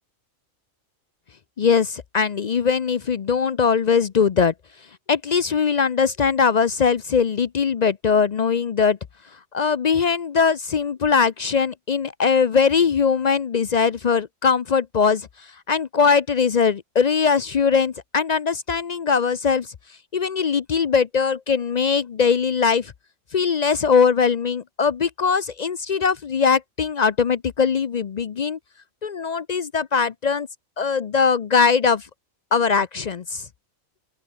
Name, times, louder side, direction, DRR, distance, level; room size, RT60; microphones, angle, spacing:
voice 1, 1.6-4.5 5.1-9.0 9.5-15.3 15.7-19.7 20.1-22.9 23.3-28.6 29.0-30.5 30.8-32.1 32.5-33.4, left 6 dB, 55° left, 0.4 m, -21 dB
open air
omnidirectional pair, 1.5 m